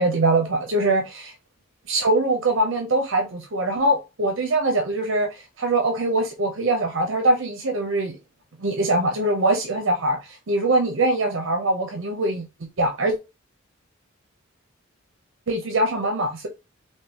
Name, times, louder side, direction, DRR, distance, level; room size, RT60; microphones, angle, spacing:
voice 1, 0.0-1.3 1.9-8.1 8.6-12.4 12.8-13.1 15.5-16.5, right 2 dB, 65° right, 0.7 m, -22 dB
3.6 x 2.8 x 2.9 m
head